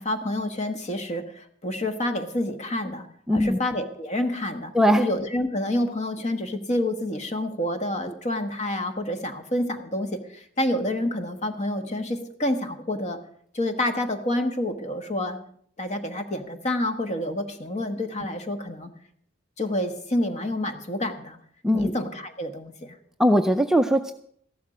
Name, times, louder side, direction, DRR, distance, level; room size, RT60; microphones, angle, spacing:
voice 1, 0.0-3.1 3.3-4.7 5.0-13.2 13.5-15.4 15.8-18.9 19.6-21.4 21.7-23.0, left 1 dB, 35° left, 7 dB, 1.3 m, -28 dB
voice 2, 3.3-3.6 4.7-5.1 21.6-21.9 23.2-24.1, equal, 5° right, 6 dB, 0.5 m, -20 dB
14.0 x 12.0 x 5.0 m, 0.64 s
head